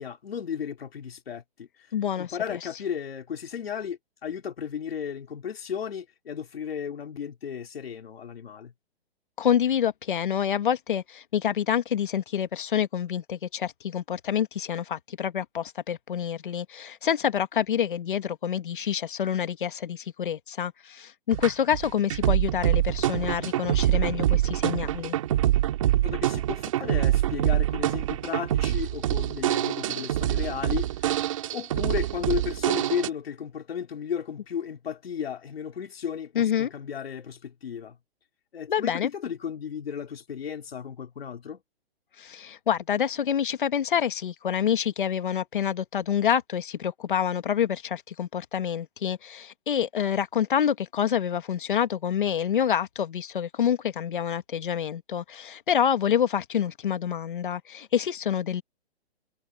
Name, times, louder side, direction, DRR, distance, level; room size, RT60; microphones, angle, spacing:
voice 1, 0.0-8.7 26.0-38.0 38.5-41.6, left 8 dB, 70° left, 3.8 m, -34 dB
voice 2, 1.9-2.3 9.4-25.2 36.4-36.7 38.7-39.1 42.2-58.6, left 9 dB, 55° left, 1.7 m, -27 dB
sound 1, 21.3-33.1, right 13 dB, 30° right, 2.2 m, -25 dB
hypercardioid pair, 175°, 31 cm